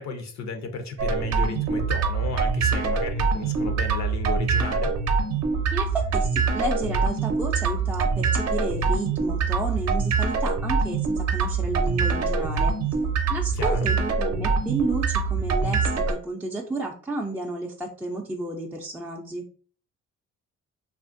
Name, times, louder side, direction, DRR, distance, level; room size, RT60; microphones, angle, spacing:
voice 1, 0.0-4.9 13.5-13.9, left 4 dB, 65° left, 7 dB, 0.6 m, -33 dB
sound 1, 1.0-16.1, right 4 dB, 60° right, 0.6 m, -24 dB
voice 2, 5.7-12.8 13.3-19.4, right 2 dB, 5° right, -1 dB, 0.4 m, -32 dB
2.7 x 2.4 x 2.5 m, 0.43 s
cardioid pair, 90°, 30 cm